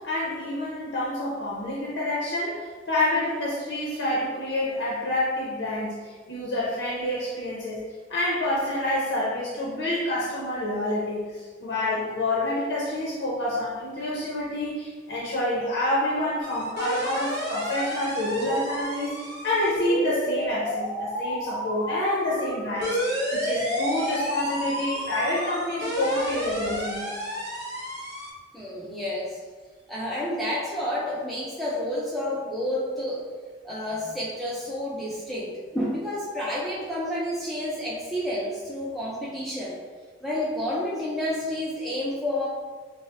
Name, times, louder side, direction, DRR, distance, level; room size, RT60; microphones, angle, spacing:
voice 1, 0.0-6.0 6.3-27.0, left 1 dB, 90° left, -6 dB, 0.7 m, -28 dB
sound 1, 16.4-28.3, equal, 65° right, 1.0 m, -31 dB
voice 2, 28.5-29.4 29.9-33.2 33.6-39.8 40.2-42.5, left 1 dB, ahead, -7 dB, 0.4 m, -30 dB
5.3 x 2.0 x 2.4 m, 1.5 s
head